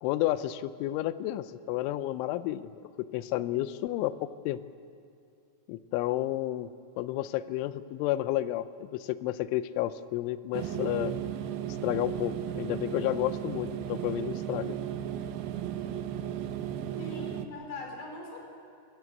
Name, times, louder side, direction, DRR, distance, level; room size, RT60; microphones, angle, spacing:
voice 1, 0.0-2.7 3.0-4.6 5.7-6.7 7.0-11.1 11.8-14.8, left 14 dB, 80° left, 14 dB, 3.1 m, -31 dB
sound 1, 10.5-17.5, right 10 dB, 75° right, 2.4 m, -35 dB
voice 2, 17.0-18.4, left 2 dB, 55° left, 1 dB, 5.8 m, -41 dB
26.5 x 14.5 x 9.5 m, 2.4 s
omnidirectional pair, 5.6 m